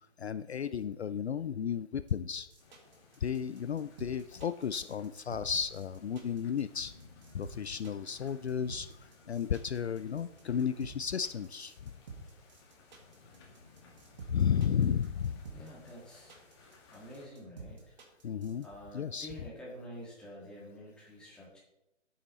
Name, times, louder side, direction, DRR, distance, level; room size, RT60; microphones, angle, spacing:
voice 1, 0.2-2.5 3.2-6.9 7.3-8.9 9.3-11.9 14.3-15.3 18.2-18.7 18.9-19.3, left 7 dB, 60° left, 13 dB, 0.5 m, -33 dB
sound 1, 2.1-18.7, right 4 dB, 35° right, 2.0 m, -50 dB
sound 2, 2.6-17.3, left 3 dB, 20° left, 2.0 m, -59 dB
voice 2, 15.5-16.3 16.9-17.8 18.6-21.6, equal, ahead, -6 dB, 1.8 m, -48 dB
10.0 x 8.6 x 4.2 m, 0.87 s
figure-of-eight pair, 155°, 37 cm